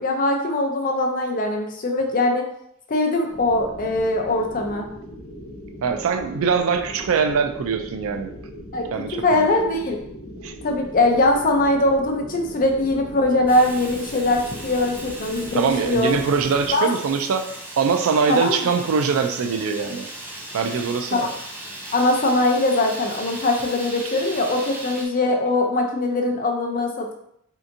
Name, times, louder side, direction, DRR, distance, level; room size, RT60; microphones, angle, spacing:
voice 1, 0.0-2.4 2.9-4.9 8.7-8.8 9.2-10.0 10.6-16.1 16.7-16.9 18.3-18.6 21.1-21.3 21.9-27.1, left 2 dB, 40° left, 2 dB, 0.5 m, -21 dB
sound 1, 3.3-16.8, equal, 80° left, 0.9 m, -39 dB
voice 2, 5.8-8.4 8.9-9.5 10.4-10.5 15.5-20.1 20.5-21.3, right 5 dB, 70° right, 7 dB, 0.3 m, -23 dB
Fire, 13.5-25.1, right 1 dB, 10° right, 0.5 m, -37 dB
3.3 x 2.8 x 2.6 m, 0.72 s
head